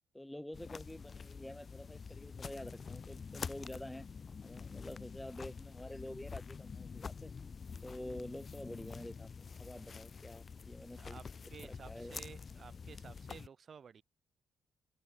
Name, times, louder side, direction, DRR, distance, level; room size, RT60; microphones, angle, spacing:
voice 1, 0.1-4.1 4.4-7.3 7.8-11.2 11.6-12.2, left 1 dB, 5° left, 3.0 m, -48 dB
sound 1, 0.5-13.5, left 5 dB, 40° left, 2.2 m, -47 dB
voice 2, 10.9-14.0, right 6 dB, 50° right, 2.1 m, -54 dB
cardioid pair, 90°, 0 cm